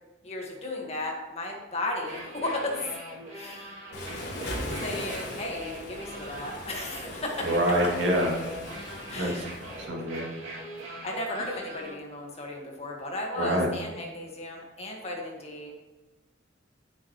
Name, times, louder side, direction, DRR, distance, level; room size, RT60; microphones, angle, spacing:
voice 1, 0.2-3.0 3.3-4.0 4.7-7.5 9.1-9.5 11.0-15.8, left 2 dB, 35° left, 0 dB, 1.8 m, -35 dB
sound 1, 2.0-11.9, right 1 dB, 90° right, 2.7 m, -41 dB
Waves surf, 3.9-9.9, left 1 dB, 65° left, 3.3 m, -39 dB
voice 2, 7.5-8.3 9.2-9.4 9.9-10.2 13.4-13.7, right 1 dB, 65° right, -2 dB, 2.6 m, -25 dB
10.5 x 9.0 x 3.2 m, 1.1 s
head